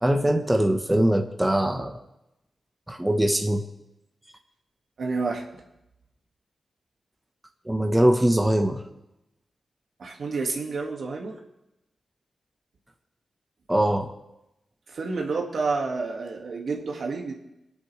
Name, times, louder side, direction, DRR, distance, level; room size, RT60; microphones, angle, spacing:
voice 1, 0.0-2.0 2.9-3.6 7.7-8.8 13.7-14.1, right 1 dB, 10° right, 5 dB, 1.1 m, -22 dB
voice 2, 5.0-5.4 10.0-11.4 14.9-17.4, right 4 dB, 70° right, 1 dB, 1.9 m, -29 dB
20.5 x 8.4 x 3.3 m, 0.89 s
cardioid pair, 60°, 0 cm